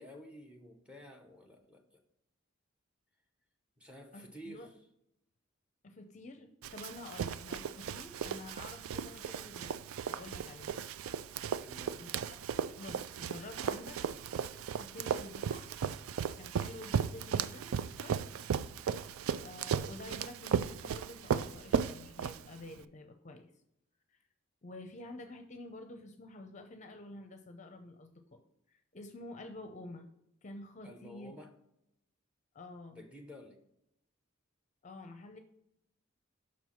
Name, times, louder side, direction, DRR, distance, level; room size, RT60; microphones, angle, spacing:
voice 1, 0.0-2.0 3.8-4.7 11.6-12.0 30.8-31.5 32.9-33.6, equal, 5° right, 4 dB, 0.9 m, -51 dB
voice 2, 4.1-4.7 5.8-9.8 10.1-10.8 12.0-12.4 12.8-14.0 14.7-15.6 16.4-18.2 19.4-23.5 24.1-24.2 24.6-28.4 28.7-30.1 30.4-31.3 32.5-33.0 34.8-35.4, left 2 dB, 35° left, 6 dB, 0.6 m, -49 dB
Run, 6.6-22.8, right 7 dB, 85° right, 0.3 m, -36 dB
6.0 x 4.6 x 5.7 m, 0.78 s
head